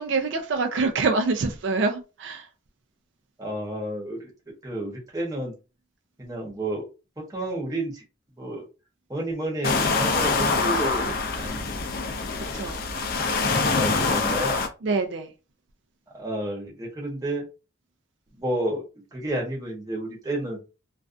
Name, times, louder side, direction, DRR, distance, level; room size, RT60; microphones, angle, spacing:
voice 1, 0.0-2.5 12.4-12.8 14.8-15.3, right 3 dB, 75° right, 0.4 m, -26 dB
voice 2, 3.4-4.3 4.6-5.5 6.2-6.8 7.2-8.0 8.3-8.7 9.1-11.9 13.7-14.7 16.1-17.4 18.3-18.8 19.1-20.6, right 1 dB, 20° right, 0.8 m, -31 dB
sound 1, 9.6-14.7, left 3 dB, 50° left, 0.4 m, -25 dB
2.4 x 2.2 x 2.4 m
head